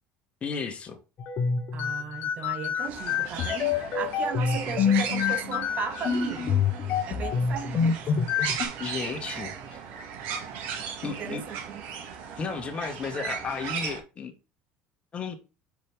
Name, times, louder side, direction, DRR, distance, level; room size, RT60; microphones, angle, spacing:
voice 1, 0.4-1.0 8.8-9.8 11.0-11.4 12.4-14.3 15.1-15.4, left 5 dB, 30° left, 1.5 m, -33 dB
sound 1, 1.2-8.7, left 6 dB, 45° left, 1.0 m, -27 dB
voice 2, 1.7-6.6 7.0-8.0 9.3-9.9 11.0-11.8, right 7 dB, 45° right, 0.9 m, -37 dB
sound 2, 2.8-14.0, right 7 dB, 75° right, 1.9 m, -37 dB
6.1 x 5.0 x 3.5 m
cardioid pair, 125°, 4 cm